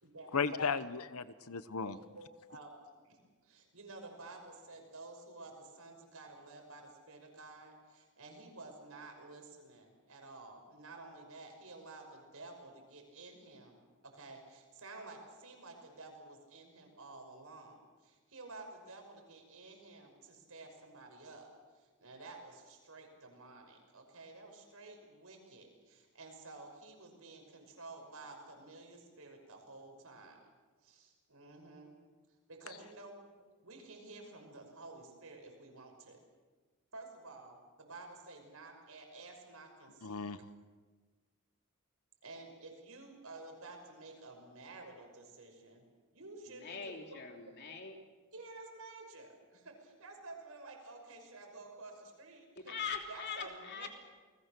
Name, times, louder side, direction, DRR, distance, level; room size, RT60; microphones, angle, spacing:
voice 1, 0.3-2.0 40.0-40.4, left 5 dB, 75° left, 14 dB, 0.9 m, -35 dB
voice 2, 1.9-2.7 3.0-13.8 14.0-21.5 21.7-30.4 30.8-31.9 32.5-36.2 36.9-40.2 42.2-45.8 46.1-47.2 48.3-52.8 53.1-53.9, right 2 dB, 70° right, 3 dB, 5.9 m, -52 dB
voice 3, 46.5-47.9 52.7-53.9, left 6 dB, 50° left, 3 dB, 3.2 m, -42 dB
29.0 x 20.5 x 6.8 m, 1.4 s
head